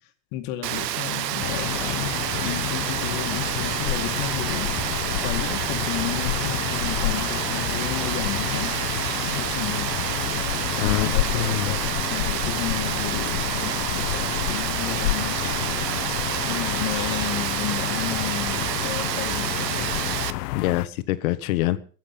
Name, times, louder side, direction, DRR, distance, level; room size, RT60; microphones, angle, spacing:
voice 1, 0.3-8.8 9.1-10.0 10.8-19.9, left 12 dB, 40° left, 2.2 m, -33 dB
Rain, 0.6-20.3, right 13 dB, 85° right, 1.3 m, -28 dB
sound 1, 1.4-20.9, left 17 dB, 85° left, 0.8 m, -29 dB
voice 2, 10.8-11.8 20.5-21.8, left 15 dB, 60° left, 1.5 m, -25 dB
23.0 x 8.0 x 5.8 m
supercardioid pair, 155°, 48 cm